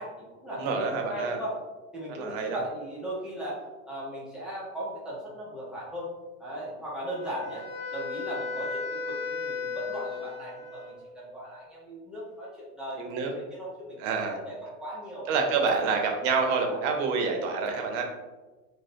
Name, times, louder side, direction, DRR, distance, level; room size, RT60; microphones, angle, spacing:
voice 1, 0.0-1.5 1.9-6.1 6.4-7.7 7.9-14.1 14.4-15.4 15.8-16.0 16.4-16.8, equal, ahead, -7 dB, 0.4 m, -38 dB
voice 2, 0.6-1.4 2.1-2.6 13.0-13.3 14.0-14.4 15.3-18.0, right 4 dB, 55° right, 3 dB, 0.6 m, -27 dB
Wind instrument woodwind instrument, 7.0-11.1, left 4 dB, 35° left, 1.4 m, -35 dB
2.4 x 2.1 x 2.6 m, 1.2 s
supercardioid pair, 125°, 43 cm